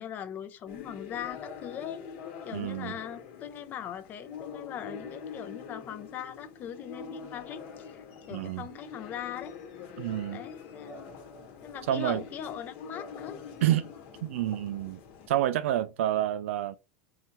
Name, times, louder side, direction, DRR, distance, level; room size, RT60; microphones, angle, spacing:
voice 1, 0.0-2.0 2.4-9.6 10.3-11.1 11.6-13.4, left 9 dB, 25° left, 0.5 m, -40 dB
sound 1, 0.7-15.3, left 6 dB, 50° left, 1.1 m, -44 dB
voice 2, 2.5-3.0 8.3-8.7 10.0-10.4 11.9-12.2 13.6-13.9 14.2-15.0 15.3-16.8, right 12 dB, 80° right, 0.3 m, -28 dB
3.8 x 2.8 x 4.2 m
supercardioid pair, 160°, 7 cm